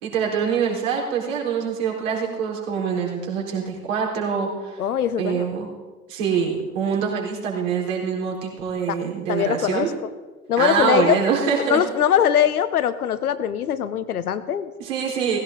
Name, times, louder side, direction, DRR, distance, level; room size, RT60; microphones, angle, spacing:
voice 1, 0.0-4.8 5.2-5.7 6.1-9.9 10.6-11.8 14.8-15.4, right 6 dB, 55° right, -2 dB, 4.1 m, -24 dB
voice 2, 4.8-5.5 8.9-9.0 9.3-10.1 10.5-11.2 11.6-14.7, left 9 dB, 75° left, 13 dB, 1.0 m, -22 dB
16.5 x 16.0 x 3.8 m, 1.3 s
figure-of-eight pair, 90°, 45 cm